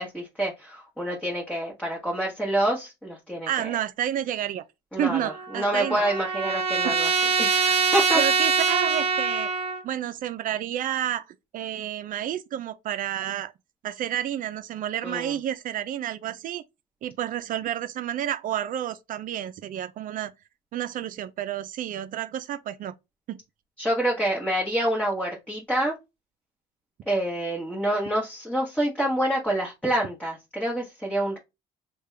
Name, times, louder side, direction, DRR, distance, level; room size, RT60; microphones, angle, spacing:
voice 1, 0.0-3.7 4.9-7.1 7.4-8.2 15.0-15.3 23.8-26.0 27.1-31.4, right 1 dB, 5° left, 1.2 m, -27 dB
voice 2, 3.5-4.6 5.0-6.0 6.4-6.5 6.8-7.0 8.1-9.5 9.8-11.3 11.5-13.5 13.8-16.6 17.0-20.3 20.7-22.9 23.3-23.4, right 11 dB, 55° right, 0.4 m, -30 dB
Trumpet, 5.1-9.8, right 5 dB, 35° right, 0.9 m, -24 dB
3.4 x 2.3 x 3.2 m
cardioid pair, 110°, 17 cm